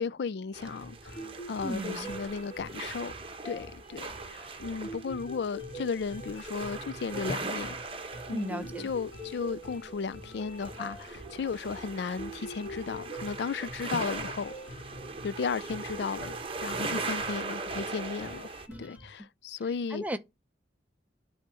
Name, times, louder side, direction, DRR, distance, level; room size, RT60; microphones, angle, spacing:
voice 1, 0.0-3.1 3.4-7.8 8.3-14.9 15.2-16.4 16.6-18.5 18.8-20.0, left 5 dB, 60° left, 0.4 m, -35 dB
sound 1, 0.5-18.7, right 3 dB, 30° right, 0.9 m, -40 dB
sound 2, 0.6-19.2, equal, 85° left, 1.6 m, -49 dB
sound 3, 1.2-15.9, right 1 dB, 30° left, 2.3 m, -46 dB
voice 2, 1.6-2.1 8.3-8.9 18.7-18.8 19.9-20.2, equal, 10° right, 0.6 m, -35 dB
8.6 x 3.6 x 6.8 m
head